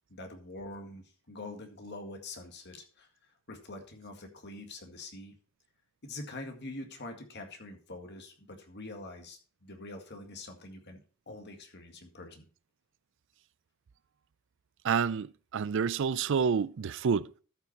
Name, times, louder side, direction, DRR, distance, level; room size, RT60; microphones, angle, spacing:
voice 1, 0.1-3.1 3.5-5.4 6.0-12.5, left 2 dB, 55° left, 2.0 m, -45 dB
voice 2, 14.8-17.3, right 6 dB, 65° right, 0.4 m, -28 dB
13.0 x 5.9 x 4.2 m
head